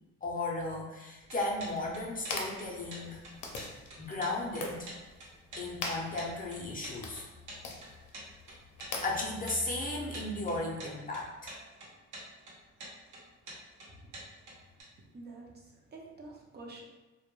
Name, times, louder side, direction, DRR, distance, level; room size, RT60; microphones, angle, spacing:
voice 1, 0.2-3.2 4.0-4.9 5.6-7.2 8.1-8.2 9.0-11.6, left 2 dB, 30° left, -3 dB, 0.5 m, -35 dB
sound 1, 1.2-14.8, right 1 dB, 85° right, 0.9 m, -48 dB
sound 2, 1.6-10.6, left 3 dB, 75° left, 0.5 m, -44 dB
voice 2, 15.1-16.8, right 2 dB, 35° right, -1 dB, 0.5 m, -48 dB
2.2 x 2.1 x 2.9 m, 1.1 s
cardioid pair, 90°, 30 cm